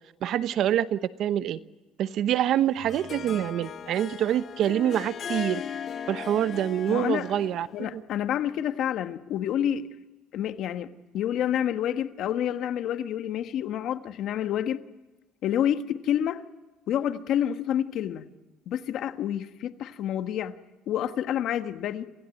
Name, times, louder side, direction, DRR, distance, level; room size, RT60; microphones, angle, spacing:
voice 1, 0.2-1.6 2.0-5.6 6.1-8.0, right 11 dB, 60° right, 1.0 m, -26 dB
Harp, 2.5-7.8, left 8 dB, 40° left, 1.0 m, -38 dB
sound 1, 2.8-6.6, right 2 dB, 80° right, 5.4 m, -53 dB
voice 2, 6.9-7.3 7.7-9.9 10.3-14.8 15.4-16.4 16.9-18.3 18.7-20.6 20.9-22.1, left 10 dB, 60° left, 1.3 m, -28 dB
27.5 x 16.5 x 9.1 m
cardioid pair, 130°, 0 cm